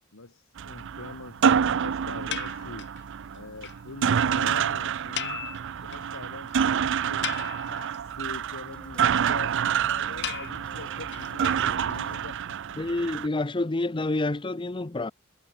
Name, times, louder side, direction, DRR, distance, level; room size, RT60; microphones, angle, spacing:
voice 1, 0.1-2.9 3.3-5.5 5.8-13.0, left 2 dB, 75° left, 2.2 m, -43 dB
sound 1, 0.6-13.3, right 8 dB, 65° right, 0.5 m, -28 dB
sound 2, 2.3-3.0 3.4-3.5 3.6-3.8 4.0-4.1 4.3-4.4 5.2-6.2 6.5-6.6 7.0-8.0 10.2-12.2, left 10 dB, 60° left, 3.1 m, -37 dB
sound 3, 8.7-13.0, equal, 5° left, 7.1 m, -52 dB
voice 2, 12.8-15.1, left 2 dB, 25° left, 0.7 m, -28 dB
head